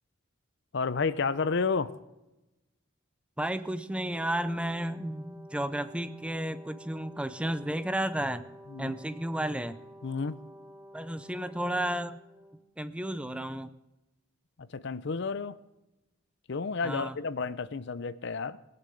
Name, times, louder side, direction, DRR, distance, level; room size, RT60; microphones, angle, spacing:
voice 1, 0.7-1.9 8.7-8.9 10.0-10.4 14.7-15.6 16.5-18.6, left 4 dB, 60° left, 16 dB, 0.6 m, -31 dB
voice 2, 3.4-8.5 8.8-9.8 10.9-12.2 12.8-13.7 16.8-17.2, right 1 dB, 5° right, 13 dB, 0.5 m, -32 dB
Brass instrument, 3.9-12.6, equal, 25° right, 2.9 m, -50 dB
20.0 x 6.8 x 7.8 m, 0.97 s
head